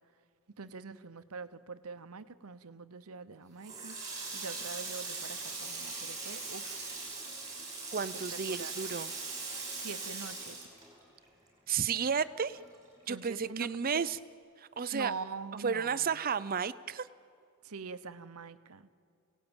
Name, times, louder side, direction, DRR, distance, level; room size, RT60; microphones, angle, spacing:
voice 1, 0.6-4.0 4.3-6.8 8.3-8.7 9.8-10.7 13.1-13.7 13.9-14.1 14.9-16.1 17.6-18.9, right 4 dB, 75° right, 12 dB, 0.9 m, -44 dB
Water tap faucet, 3.6-11.5 11.8-13.1, right 3 dB, 15° right, 5.6 m, -40 dB
voice 2, 7.9-9.1 11.7-12.6 13.1-14.2 14.6-15.1 15.6-17.1, right 6 dB, 40° right, 15 dB, 0.6 m, -32 dB
27.5 x 17.5 x 8.9 m, 2.3 s
head